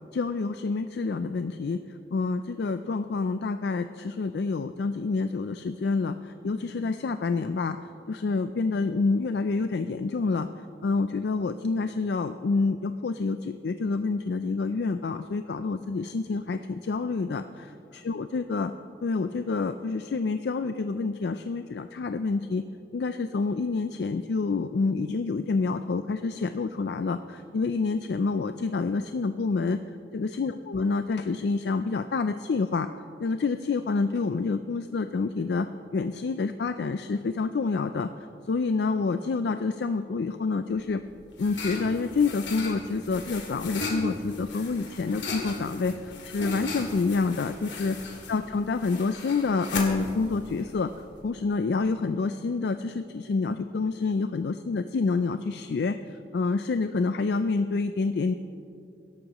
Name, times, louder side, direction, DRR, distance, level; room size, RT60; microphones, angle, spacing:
voice 1, 0.1-1.8 2.1-7.8 8.1-10.5 10.8-17.4 18.0-18.7 19.0-22.6 22.9-29.8 30.1-32.9 33.2-38.1 38.5-41.0 41.4-47.9 48.3-50.9 51.2-56.0 56.3-58.3, left 4 dB, 60° left, 9 dB, 0.4 m, -28 dB
sound 1, 40.8-51.3, left 3 dB, 75° left, 2.2 m, -37 dB
23.0 x 12.0 x 3.0 m, 2.7 s
head